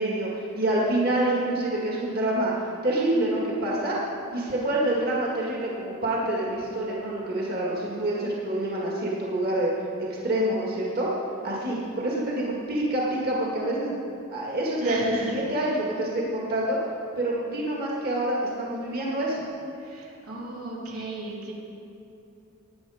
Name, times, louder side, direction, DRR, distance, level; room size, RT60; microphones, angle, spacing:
voice 1, 0.0-2.5 2.8-4.0 4.3-9.7 10.2-11.1 11.4-14.0 14.3-15.0 15.3-16.8 17.2-19.4, right 1 dB, 45° right, -4 dB, 1.9 m, -27 dB
voice 2, 14.8-15.3 19.8-21.5, right 2 dB, 85° right, -4 dB, 3.1 m, -34 dB
18.0 x 9.8 x 5.0 m, 2.8 s
head